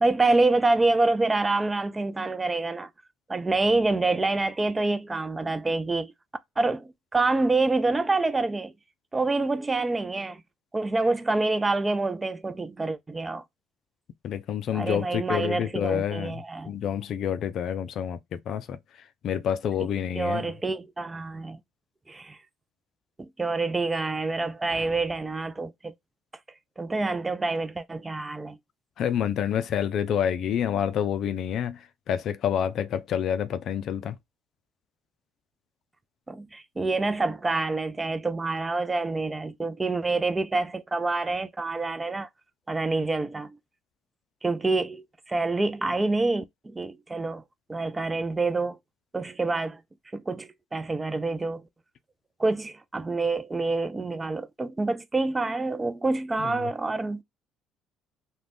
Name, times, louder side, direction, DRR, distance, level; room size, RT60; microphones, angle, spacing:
voice 1, 0.0-2.9 3.3-6.1 6.6-8.7 9.1-10.4 10.7-13.4 14.7-16.8 19.8-19.9 20.2-21.6 22.1-22.4 23.2-25.9 26.8-28.6 36.3-42.3 42.7-43.6 44.4-47.4 47.7-48.8 49.1-49.8 50.1-51.6 52.4-57.2, right 3 dB, 20° right, 0.4 m, -27 dB
voice 2, 14.2-18.8 19.2-20.5 29.0-34.1 56.4-56.7, left 9 dB, 60° left, 0.3 m, -28 dB
2.4 x 2.2 x 3.3 m
hypercardioid pair, 65°, 0 cm